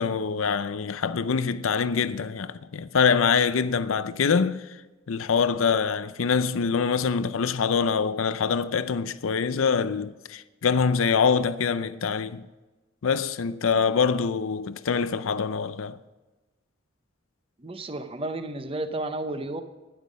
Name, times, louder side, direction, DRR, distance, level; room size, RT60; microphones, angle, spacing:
voice 1, 0.0-4.7 5.1-12.5 13.0-16.0, left 6 dB, 85° left, 0.5 m, -24 dB
voice 2, 17.6-19.6, right 2 dB, 25° right, 0.8 m, -32 dB
12.5 x 10.5 x 5.2 m
head